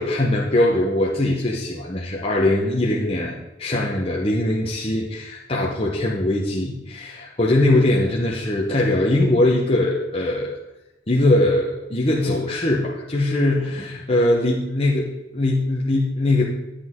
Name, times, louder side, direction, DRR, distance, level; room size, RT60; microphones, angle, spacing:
voice 1, 0.0-3.3 3.6-10.6 11.1-16.4, left 1 dB, 30° left, -3 dB, 1.0 m, -21 dB
10.0 x 8.2 x 3.7 m, 0.97 s
head